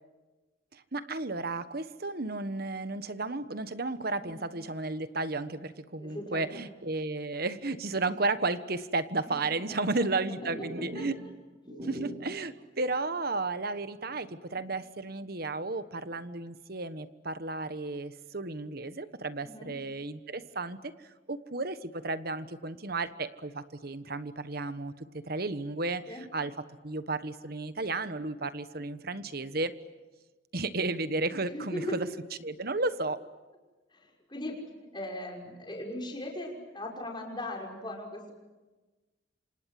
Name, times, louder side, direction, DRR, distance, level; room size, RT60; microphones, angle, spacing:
voice 1, 0.7-11.2 11.8-26.5 26.8-29.8 30.5-32.1 32.4-33.2, right 3 dB, 50° right, 12 dB, 1.3 m, -33 dB
voice 2, 6.0-6.6 9.2-11.1 19.4-19.7 26.1-26.2 31.5-32.0 33.9-38.3, left 1 dB, 25° left, 1 dB, 5.9 m, -39 dB
sound 1, 10.4-11.3 11.5-12.4 12.8-12.9 13.3-13.4 13.9-15.3 15.6-16.3, right 1 dB, 30° right, 8.0 m, -42 dB
28.0 x 27.0 x 7.7 m, 1.2 s
head